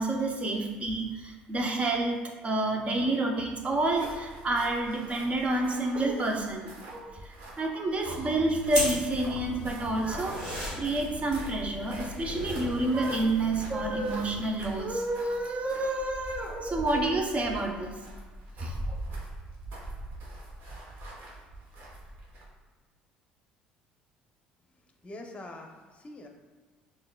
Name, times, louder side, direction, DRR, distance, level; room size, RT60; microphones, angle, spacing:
voice 1, 0.0-10.4 10.7-18.0 18.6-19.0, right 2 dB, 30° right, 2 dB, 0.7 m, -29 dB
sound 1, 3.7-22.6, right 1 dB, 60° right, 1.1 m, -44 dB
sound 2, 8.7-14.4, equal, 85° right, 1.5 m, -37 dB
voice 2, 25.0-26.3, left 2 dB, 30° left, 3 dB, 0.7 m, -44 dB
6.4 x 2.6 x 2.2 m, 1.3 s
hypercardioid pair, 60°, 4 cm